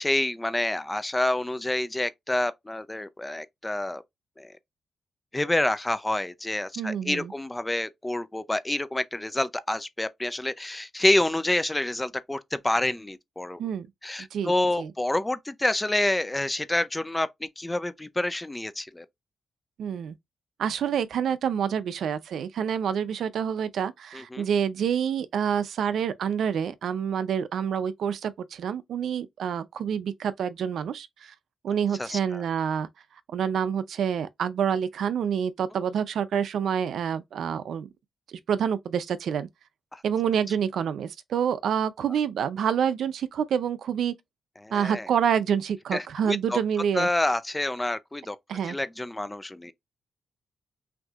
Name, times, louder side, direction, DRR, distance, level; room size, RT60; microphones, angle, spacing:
voice 1, 0.0-4.0 4.4-4.5 5.3-13.7 14.0-19.1 24.1-24.5 32.0-32.4 39.9-40.0 44.6-45.1 45.9-46.6 46.9-48.4 48.6-49.7, left 1 dB, 15° left, 0.5 m, -28 dB
voice 2, 6.8-7.3 13.6-13.9 14.3-14.5 14.8-14.9 19.8-20.2 20.6-31.3 31.6-32.9 33.3-37.9 38.3-39.5 40.0-44.1 44.7-47.1 48.5-48.8, right 8 dB, 85° right, 0.5 m, -27 dB
5.9 x 2.7 x 2.4 m
wide cardioid pair, 120°, 0 cm